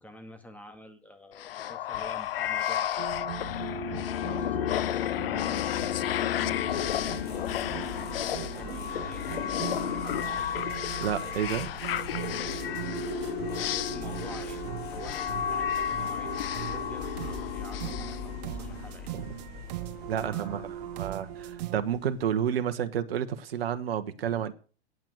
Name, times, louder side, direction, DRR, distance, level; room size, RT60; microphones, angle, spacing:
voice 1, 0.0-3.1 3.8-7.3 7.9-9.5 9.8-10.6 13.5-14.6 14.9-19.1 20.1-20.9, equal, 5° left, 2.1 m, -48 dB
sound 1, 1.4-19.0, left 11 dB, 60° left, 0.6 m, -32 dB
sound 2, 3.0-21.8, right 14 dB, 40° right, 0.6 m, -40 dB
sound 3, 6.7-22.7, left 5 dB, 30° left, 5.3 m, -43 dB
voice 2, 11.0-11.7 20.1-20.6 21.0-24.5, right 9 dB, 60° right, 1.4 m, -30 dB
9.4 x 8.9 x 8.0 m
hypercardioid pair, 115°, 33 cm